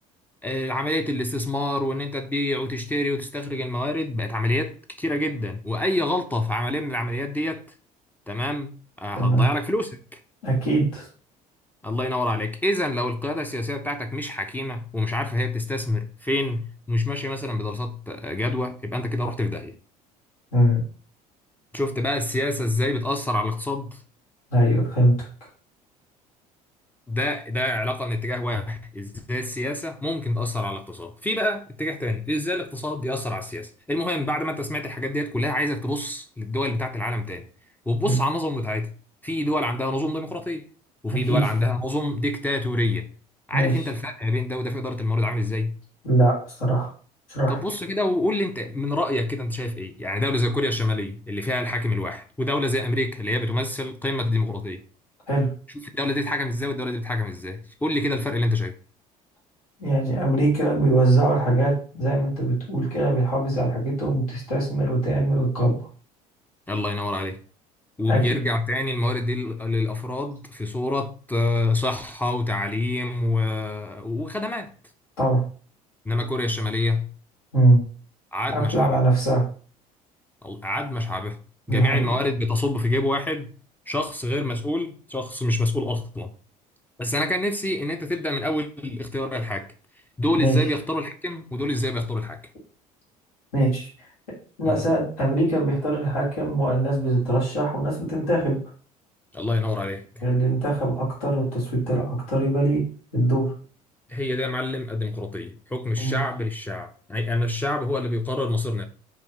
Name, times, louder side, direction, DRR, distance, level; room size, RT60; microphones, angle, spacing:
voice 1, 0.4-7.6 8.3-10.2 11.8-19.7 21.7-24.0 27.1-37.5 37.9-38.9 39.2-40.7 41.0-43.1 43.5-45.8 47.5-54.8 55.7-58.7 66.7-67.4 68.0-74.7 76.1-77.1 78.3-79.0 80.4-81.4 81.7-83.5 83.9-86.3 87.0-89.7 90.2-92.4 94.7-94.8 99.3-100.2 104.1-108.9, left 1 dB, 10° left, 0.4 m, -27 dB
voice 2, 10.4-11.1 20.5-20.8 24.5-25.1 38.0-38.1 41.1-41.4 43.5-43.7 46.0-46.9 47.3-47.6 55.3-55.5 59.8-65.8 68.1-68.3 75.2-75.4 77.5-77.8 78.5-79.4 81.7-82.1 90.4-90.6 93.5-93.9 94.6-98.6 100.2-102.8 103.1-103.5 106.0-106.2, right 1 dB, 85° left, 1.5 m, -22 dB
2.9 x 2.2 x 3.5 m
hypercardioid pair, 65°, 19 cm